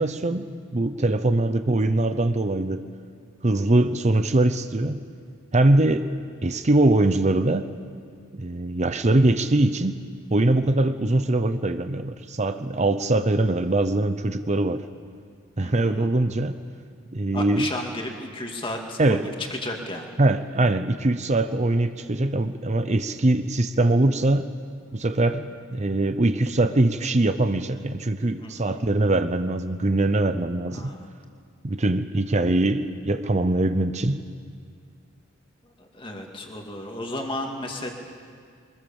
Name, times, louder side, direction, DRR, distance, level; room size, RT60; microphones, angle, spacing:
voice 1, 0.0-2.8 3.4-5.1 5.5-6.1 6.4-7.7 8.3-14.8 15.6-16.6 17.1-17.7 19.0-19.3 20.2-24.5 24.9-30.9 31.6-34.2, right 2 dB, 35° right, 9 dB, 0.7 m, -22 dB
voice 2, 15.6-16.1 17.3-20.1 28.4-28.9 30.7-31.1 35.6-37.9, left 1 dB, 25° left, 2 dB, 2.4 m, -34 dB
23.5 x 20.5 x 7.2 m, 2.1 s
head